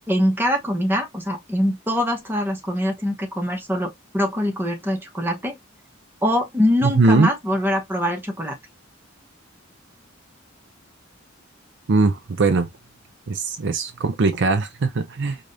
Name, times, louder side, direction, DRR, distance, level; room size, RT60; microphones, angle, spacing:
voice 1, 0.1-5.5 6.2-8.5, equal, 10° right, 1.1 m, -23 dB
voice 2, 6.8-7.3 11.9-12.7 13.3-15.4, right 3 dB, 65° right, 0.5 m, -20 dB
4.8 x 2.5 x 2.6 m
head